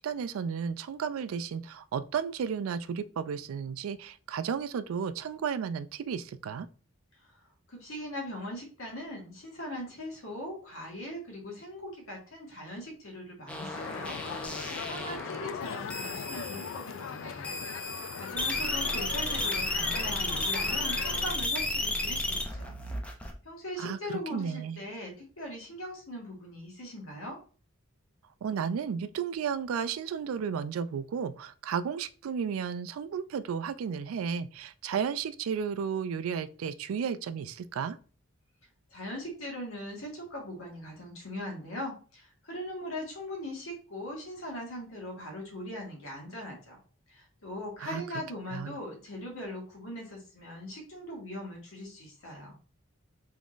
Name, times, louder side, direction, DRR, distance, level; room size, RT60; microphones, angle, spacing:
voice 1, 0.0-6.7 23.8-24.8 28.4-38.0 47.8-48.0 48.5-48.8, right 7 dB, 85° right, 0.3 m, -33 dB
voice 2, 7.7-17.5 17.9-22.7 23.4-27.4 38.9-46.8 47.1-52.6, left 1 dB, 85° left, 1.6 m, -40 dB
sound 1, 13.5-15.6 15.9-16.9 17.4-23.3, left 2 dB, 5° left, 0.6 m, -33 dB
sound 2, 13.7-21.4, left 7 dB, 65° left, 0.3 m, -40 dB
3.6 x 3.6 x 2.5 m
head